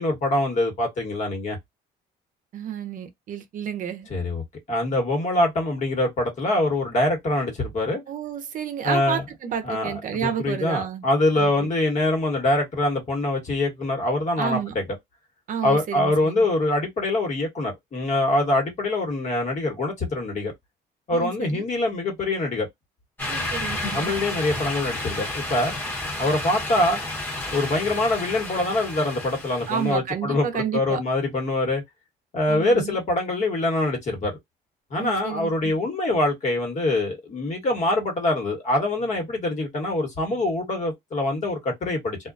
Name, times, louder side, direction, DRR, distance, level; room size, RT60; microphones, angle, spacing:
voice 1, 0.0-1.6 4.1-4.4 4.7-8.0 8.8-9.2 9.6-14.8 15.6-20.5 21.1-22.7 23.9-25.7 26.2-27.0 27.5-31.8 32.3-34.4 34.9-42.2, left 2 dB, 45° left, 1.3 m, -24 dB
voice 2, 2.5-4.1 8.1-11.1 11.4-11.7 14.4-14.7 15.5-16.5 21.1-21.6 23.3-24.2 29.7-31.0 32.5-32.9 35.0-35.8, right 8 dB, 50° right, 0.6 m, -31 dB
sound 1, 23.2-30.0, left 2 dB, 10° left, 1.0 m, -31 dB
2.3 x 2.1 x 2.5 m
cardioid pair, 110°, 17 cm